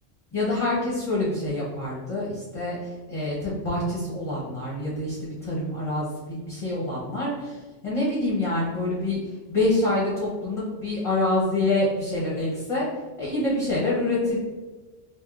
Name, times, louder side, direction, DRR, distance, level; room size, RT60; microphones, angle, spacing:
voice 1, 0.3-9.2 9.5-12.9 13.2-14.4, left 2 dB, 35° left, -7 dB, 0.7 m, -26 dB
3.4 x 2.4 x 2.4 m, 1.3 s
omnidirectional pair, 1.2 m